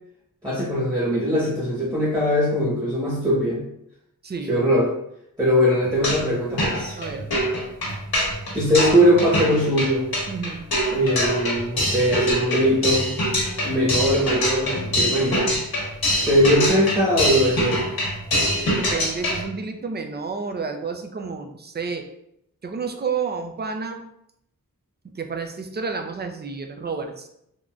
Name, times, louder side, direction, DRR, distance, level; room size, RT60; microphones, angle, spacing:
voice 1, 0.4-3.6 4.5-4.9 5.4-7.0 8.5-10.1 10.9-13.1 13.6-15.5 16.1-17.8, equal, 10° right, -7 dB, 1.1 m, -21 dB
voice 2, 4.2-4.6 7.0-7.3 10.3-10.6 18.7-22.1 22.6-24.0 25.1-27.3, right 5 dB, 30° right, 5 dB, 0.4 m, -30 dB
sound 1, 5.9-6.3 6.6-19.4, equal, 90° left, 1.0 m, -24 dB
3.5 x 2.5 x 2.3 m, 0.77 s
cardioid pair, 45°, 36 cm